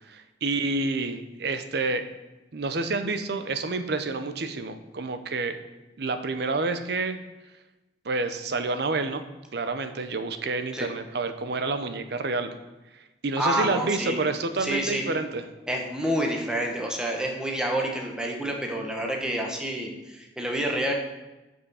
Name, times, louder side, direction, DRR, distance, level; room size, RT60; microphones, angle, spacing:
voice 1, 0.1-2.0 2.5-5.6 6.0-7.2 8.0-9.2 9.5-12.5 13.2-15.4, right 3 dB, 60° right, 9 dB, 0.6 m, -28 dB
voice 2, 13.4-14.2 14.6-15.0 15.7-20.9, right 1 dB, 5° right, 0 dB, 1.0 m, -28 dB
6.8 x 5.6 x 5.5 m, 1.1 s
head